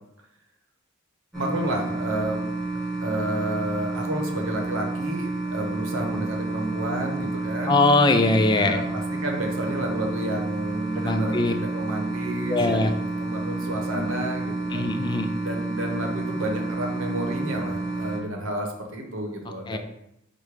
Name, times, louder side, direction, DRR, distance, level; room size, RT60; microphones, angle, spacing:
sound 1, 1.3-18.2, right 2 dB, ahead, 1.2 m, -30 dB
voice 1, 1.4-2.4 3.0-7.8 8.6-14.9 15.4-19.8, right 1 dB, 70° right, 2 dB, 0.9 m, -31 dB
voice 2, 7.7-8.8 11.0-11.5 12.5-12.9 13.9-14.1 14.7-15.3 19.7-19.8, left 2 dB, 20° left, 7 dB, 0.3 m, -21 dB
5.0 x 2.2 x 4.6 m, 0.80 s
head